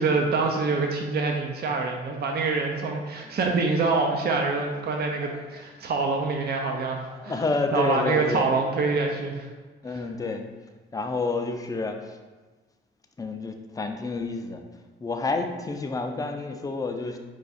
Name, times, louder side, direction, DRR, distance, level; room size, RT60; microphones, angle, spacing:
voice 1, 0.0-7.4 7.7-9.5 9.9-10.0, right 4 dB, 50° right, 2 dB, 0.6 m, -26 dB
voice 2, 2.9-3.3 5.2-5.5 7.1-8.5 9.8-10.4 10.9-12.2 13.2-14.6 15.0-17.2, left 3 dB, 15° left, 4 dB, 0.4 m, -29 dB
4.7 x 2.3 x 4.1 m, 1.3 s
cardioid pair, 85°, 21 cm